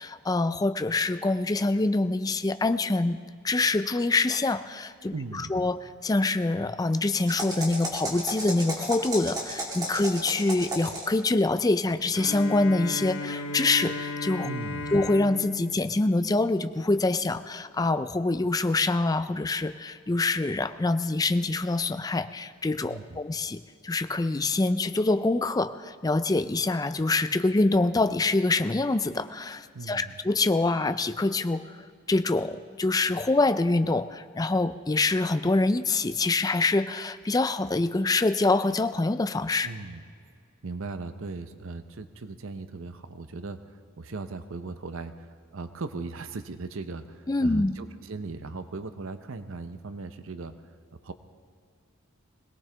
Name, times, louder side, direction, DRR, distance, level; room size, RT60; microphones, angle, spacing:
voice 1, 0.0-3.2 3.4-14.5 14.9-39.7 47.3-47.8, left 2 dB, 20° left, 12 dB, 0.4 m, -25 dB
voice 2, 5.1-5.6 14.4-15.0 22.9-23.2 29.7-30.2 39.6-40.0 40.6-50.5 51.0-51.1, right 3 dB, 70° right, 10 dB, 0.7 m, -38 dB
sound 1, 7.2-11.2, right 1 dB, 20° right, 2.5 m, -34 dB
Bowed string instrument, 12.1-17.1, left 3 dB, 70° left, 1.0 m, -36 dB
21.5 x 18.0 x 3.4 m, 2.1 s
head